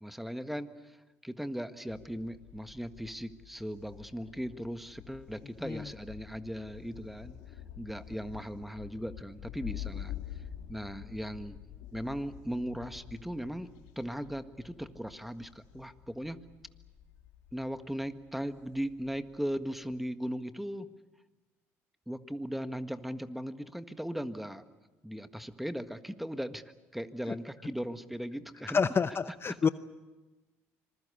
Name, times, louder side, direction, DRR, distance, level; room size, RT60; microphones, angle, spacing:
voice 1, 0.0-1.0 1.2-7.4 7.8-10.1 10.7-11.6 11.9-13.7 14.0-16.4 17.5-20.9 22.1-24.6 25.0-26.6 26.9-28.8 29.5-29.6, equal, ahead, 10 dB, 1.6 m, -38 dB
Thunder, 1.9-19.9, left 11 dB, 80° left, 2.5 m, -48 dB
voice 2, 28.7-29.7, left 5 dB, 35° left, 13 dB, 0.8 m, -28 dB
26.5 x 21.0 x 8.4 m, 1.2 s
hypercardioid pair, 65°, 7 cm